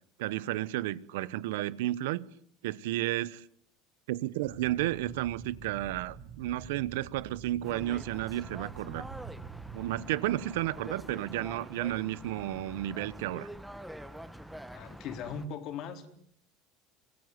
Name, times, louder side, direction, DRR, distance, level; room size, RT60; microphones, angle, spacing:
voice 1, 0.2-2.3 2.6-3.4 4.1-9.1 9.7-13.5, right 15 dB, 85° right, 19 dB, 1.1 m, -32 dB
sound 1, 4.4-10.0, right 7 dB, 55° right, 4.5 m, -46 dB
sound 2, 7.6-15.5, equal, 5° right, 1.9 m, -45 dB
voice 2, 14.7-16.1, left 6 dB, 55° left, 8 dB, 4.1 m, -39 dB
25.0 x 18.5 x 9.5 m, 0.62 s
supercardioid pair, 110°, 0 cm